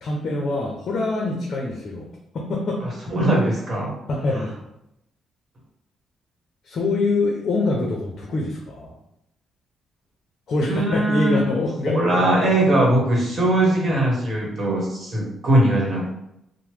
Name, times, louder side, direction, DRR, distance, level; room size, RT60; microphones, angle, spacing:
voice 1, 0.0-2.1 2.3-2.8 4.1-4.5 6.6-8.9 10.5-11.9, left 2 dB, 55° left, -1 dB, 0.5 m, -24 dB
voice 2, 2.8-3.9 4.3-4.4 10.7-11.4 11.9-16.1, right 1 dB, 40° right, -3 dB, 1.1 m, -20 dB
2.9 x 2.0 x 3.2 m, 0.81 s
cardioid pair, 90°, 0 cm